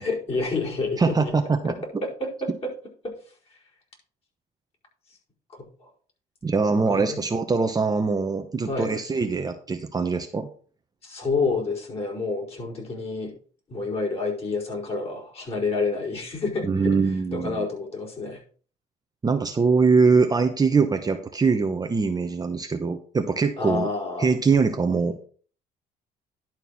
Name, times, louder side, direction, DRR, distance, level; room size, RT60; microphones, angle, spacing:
voice 1, 0.0-1.4 2.0-2.7 5.6-5.9 6.7-7.2 8.7-8.9 11.0-13.3 13.7-17.0 17.3-18.4 23.6-24.3, left 3 dB, 35° left, -3 dB, 4.9 m, -29 dB
voice 2, 1.0-1.7 6.4-10.5 16.6-17.6 19.2-23.9 24.2-25.3, right 4 dB, 20° right, 6 dB, 0.9 m, -22 dB
11.0 x 4.5 x 5.7 m, 0.43 s
cardioid pair, 110°, 17 cm